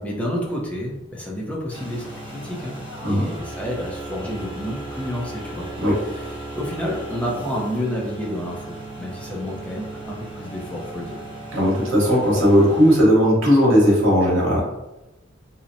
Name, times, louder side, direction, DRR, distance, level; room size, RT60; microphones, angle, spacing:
voice 1, 0.0-2.8 3.0-5.7 6.1-6.3 6.5-11.2, equal, 5° left, -3 dB, 0.5 m, -30 dB
sound 1, 1.7-13.0, right 2 dB, 25° right, 0.8 m, -36 dB
voice 2, 11.5-14.6, equal, 85° right, -4 dB, 1.0 m, -17 dB
2.8 x 2.0 x 2.5 m, 0.97 s
head